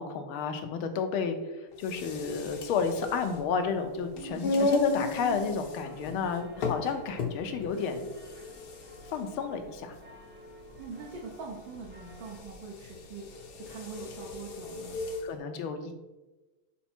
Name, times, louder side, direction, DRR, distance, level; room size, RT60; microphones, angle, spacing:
voice 1, 0.0-8.1 9.1-9.9 15.2-15.9, left 5 dB, 75° left, 7 dB, 1.6 m, -32 dB
sound 1, 1.7-15.3, left 3 dB, 60° left, 1.2 m, -35 dB
voice 2, 4.1-4.8 10.8-15.0, right 5 dB, 65° right, -2 dB, 1.6 m, -43 dB
sound 2, 5.8-12.4, equal, 15° right, 0.4 m, -52 dB
5.6 x 5.0 x 4.4 m, 1.1 s
omnidirectional pair, 2.4 m